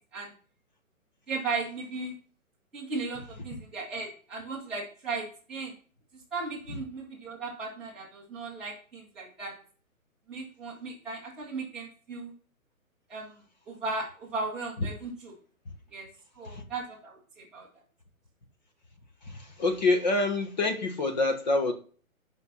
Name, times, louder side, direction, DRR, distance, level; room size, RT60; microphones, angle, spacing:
voice 1, 1.3-2.1 2.7-5.7 6.1-9.5 10.3-12.3 13.1-15.3 15.9-16.1 16.3-17.7, right 3 dB, ahead, 0.9 m, -36 dB
voice 2, 19.2-21.7, left 2 dB, 30° left, 1.3 m, -27 dB
9.0 x 5.6 x 5.7 m
hypercardioid pair, 170°, 42 cm